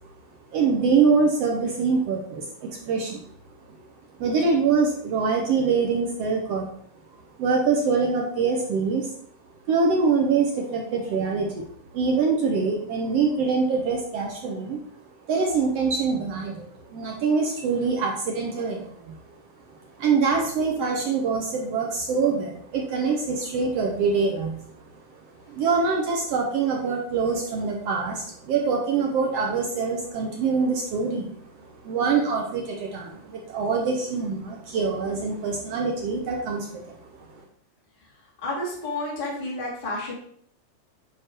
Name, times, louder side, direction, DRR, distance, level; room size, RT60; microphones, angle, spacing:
voice 1, 0.5-3.2 4.2-6.7 7.4-9.1 9.7-11.7 11.9-14.8 15.3-19.2 20.0-24.6 25.5-31.3 31.6-37.4, right 5 dB, 70° right, 1 dB, 1.6 m, -24 dB
voice 2, 38.4-40.1, left 2 dB, 15° left, -5 dB, 2.1 m, -30 dB
9.5 x 3.8 x 4.4 m, 0.63 s
omnidirectional pair, 3.8 m